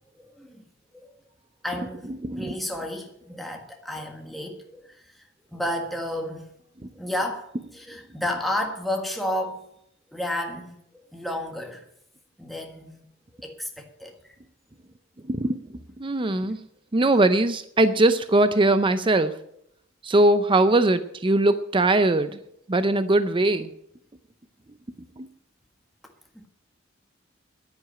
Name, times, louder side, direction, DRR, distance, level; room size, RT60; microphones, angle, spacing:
voice 1, 0.2-0.6 0.9-1.2 1.6-6.5 6.9-9.7 10.1-11.8 12.4-13.0 13.4-14.1 26.3-26.5, left 1 dB, ahead, 1.5 m, -32 dB
voice 2, 2.2-2.5 15.3-16.6 16.9-19.3 20.0-22.4 22.7-23.7 25.2-25.3, right 2 dB, 25° right, 0.6 m, -21 dB
10.5 x 9.8 x 9.1 m
head